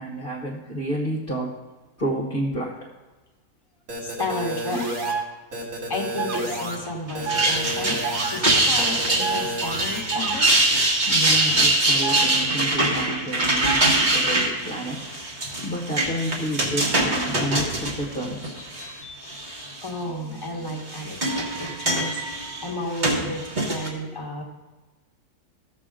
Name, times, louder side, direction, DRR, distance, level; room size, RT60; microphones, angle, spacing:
voice 1, 0.0-1.5 2.0-2.9 11.0-15.1 15.6-18.6, right 1 dB, 35° left, -3 dB, 1.3 m, -30 dB
sound 1, 3.9-5.1 5.5-6.8 7.1-8.4 8.8-10.0, right 1 dB, 55° right, 2.0 m, -31 dB
voice 2, 4.0-5.5 5.9-10.5 18.6-24.4, left 2 dB, 15° left, -1 dB, 1.5 m, -33 dB
sound 2, 5.0-5.2 6.2-6.4 7.3-7.5 8.0-8.3 9.2-9.4 10.1-10.4 12.0-12.3 13.6-13.9, right 7 dB, 80° right, 1.4 m, -28 dB
sound 3, 7.1-18.8 19.3-19.9 20.7-23.9, right 2 dB, 30° right, 1.5 m, -23 dB
14.5 x 6.6 x 3.8 m, 1.2 s
omnidirectional pair, 1.7 m